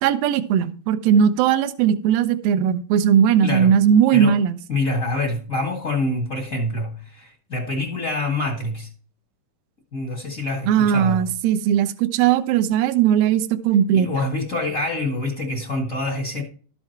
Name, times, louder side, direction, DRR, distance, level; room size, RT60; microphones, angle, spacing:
voice 1, 0.0-4.6 10.7-14.1, right 8 dB, 75° right, 2.5 m, -18 dB
voice 2, 3.4-3.7 4.1-4.4 4.7-8.9 9.9-11.2 13.9-16.4, left 2 dB, 40° left, 1.2 m, -26 dB
12.5 x 7.4 x 4.5 m
omnidirectional pair, 4.6 m